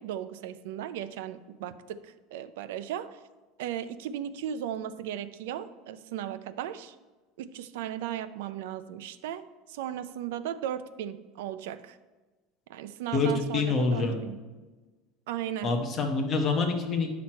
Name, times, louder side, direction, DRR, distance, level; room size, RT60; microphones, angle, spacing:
voice 1, 0.0-3.2 3.6-6.9 7.4-12.0 12.7-14.4 15.3-15.7, right 10 dB, 80° right, 12 dB, 0.5 m, -36 dB
voice 2, 13.1-14.2 15.6-17.1, left 4 dB, 20° left, 2 dB, 1.0 m, -26 dB
9.5 x 6.0 x 4.4 m, 1.2 s
cardioid pair, 175°, 0 cm